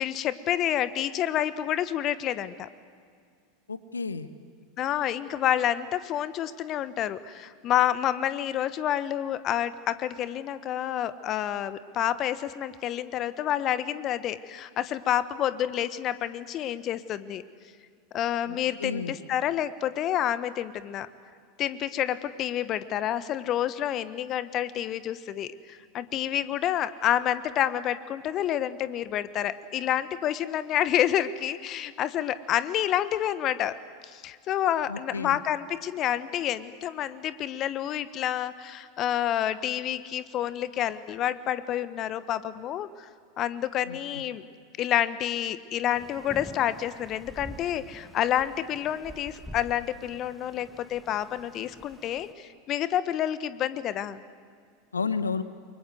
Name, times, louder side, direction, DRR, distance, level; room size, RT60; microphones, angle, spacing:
voice 1, 0.0-2.7 4.8-17.4 18.1-21.1 21.6-43.1 43.4-44.4 44.8-54.2, left 11 dB, 40° left, 15 dB, 1.1 m, -29 dB
voice 2, 3.7-4.3 18.4-19.1 34.9-35.4 43.8-44.2 54.9-55.4, left 5 dB, 85° left, 13 dB, 1.1 m, -32 dB
sound 1, 45.9-52.3, equal, 5° left, 1.9 m, -47 dB
29.0 x 24.0 x 7.8 m, 2.2 s
figure-of-eight pair, 85°, 0 cm